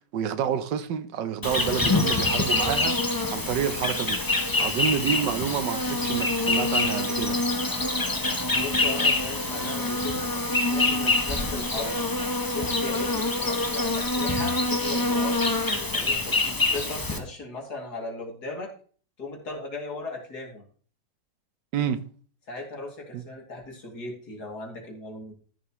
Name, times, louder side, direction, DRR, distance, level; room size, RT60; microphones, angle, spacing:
voice 1, 0.1-4.2 4.6-7.4 21.7-22.0 23.1-23.2, right 8 dB, 80° right, 1.5 m, -28 dB
Insect, 1.4-17.2, left 2 dB, 15° left, 0.8 m, -25 dB
voice 2, 8.5-12.0 12.5-15.4 15.9-18.7 19.2-20.6 22.5-25.3, left 2 dB, 60° left, 3.2 m, -37 dB
13.5 x 7.4 x 3.1 m
omnidirectional pair, 1.9 m